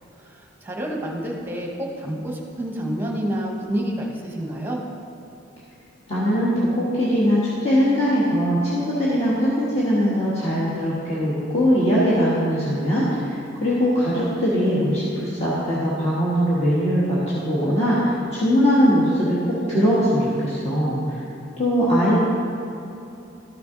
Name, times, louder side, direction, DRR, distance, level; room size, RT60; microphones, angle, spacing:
voice 1, 0.2-4.8, right 1 dB, 10° right, -1 dB, 1.2 m, -28 dB
voice 2, 6.1-21.2 21.6-22.2, equal, 30° left, -10 dB, 1.6 m, -21 dB
13.0 x 6.8 x 3.9 m, 2.8 s
head